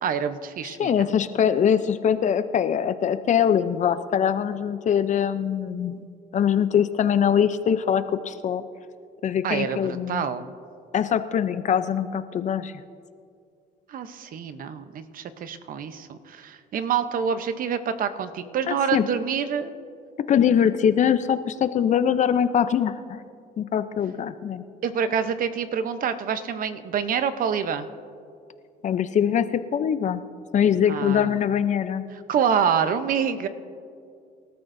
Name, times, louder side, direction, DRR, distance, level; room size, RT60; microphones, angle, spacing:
voice 1, 0.0-0.9 9.4-10.6 13.9-19.7 24.8-27.9 30.9-31.4 32.1-33.5, right 7 dB, 55° right, 10 dB, 0.8 m, -27 dB
voice 2, 0.8-6.0 6.3-8.6 9.2-10.2 10.9-12.7 18.7-19.0 20.3-23.2 23.6-24.6 28.8-30.2 30.5-32.0, left 8 dB, 45° left, 12 dB, 0.6 m, -22 dB
25.0 x 13.0 x 2.7 m, 2.4 s
cardioid pair, 110°, 17 cm